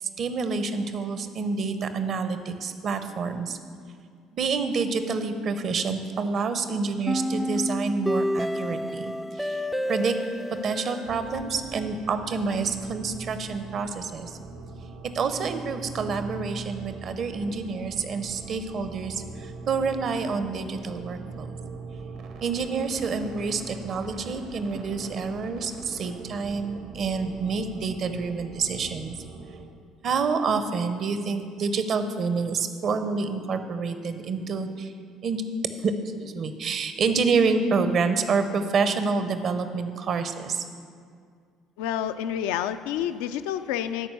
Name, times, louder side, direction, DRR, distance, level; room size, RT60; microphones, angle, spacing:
voice 1, 0.2-3.6 4.3-9.6 9.9-10.2 10.6-14.3 15.0-21.5 22.4-29.1 30.0-34.9 35.2-35.4 35.8-35.9 36.2-40.6, right 4 dB, 55° right, 9 dB, 0.8 m, -28 dB
sound 1, 7.1-12.1, equal, ahead, 0.4 m, -30 dB
sound 2, 11.0-29.6, right 3 dB, 75° right, 1.2 m, -41 dB
voice 2, 41.8-44.1, left 10 dB, 75° left, 11 dB, 0.4 m, -29 dB
11.0 x 4.5 x 7.7 m, 2.1 s
hypercardioid pair, 60°, 0 cm